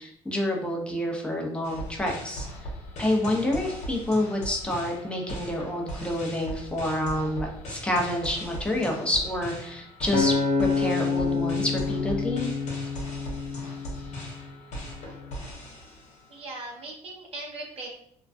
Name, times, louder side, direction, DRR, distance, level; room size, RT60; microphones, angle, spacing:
voice 1, 0.0-2.5 3.0-12.5, left 1 dB, 10° left, -1 dB, 0.6 m, -28 dB
sound 1, 1.6-16.4, equal, 60° left, 0.9 m, -39 dB
Acoustic guitar, 10.1-14.5 15.1-15.3, left 4 dB, 85° left, 0.5 m, -27 dB
voice 2, 16.3-17.9, right 2 dB, 45° right, -2 dB, 0.7 m, -39 dB
2.4 x 2.2 x 2.4 m, 0.68 s
supercardioid pair, 85°, 13 cm